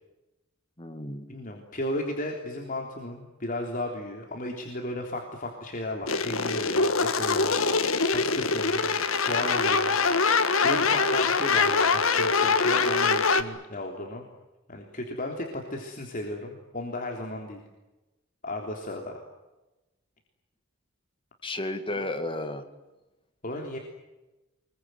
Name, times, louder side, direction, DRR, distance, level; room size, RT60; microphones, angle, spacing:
voice 1, 0.8-1.3 21.4-22.7, left 1 dB, 25° left, 8 dB, 2.4 m, -33 dB
voice 2, 1.3-9.9 10.6-14.2 14.7-17.6 18.4-19.2 22.0-22.1 23.4-23.8, left 1 dB, 40° left, 1 dB, 3.5 m, -34 dB
sound 1, 6.1-13.4, left 4 dB, 75° left, 1.8 m, -24 dB
26.0 x 22.5 x 9.5 m, 1.0 s
head